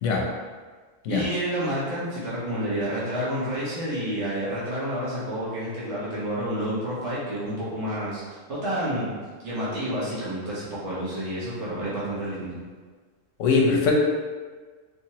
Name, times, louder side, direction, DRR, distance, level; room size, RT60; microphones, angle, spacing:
voice 1, 1.1-9.1 9.4-12.6, equal, 60° right, -9 dB, 1.4 m, -29 dB
voice 2, 13.4-13.9, left 4 dB, 75° left, 0 dB, 0.9 m, -21 dB
3.3 x 2.9 x 2.8 m, 1.5 s
omnidirectional pair, 1.3 m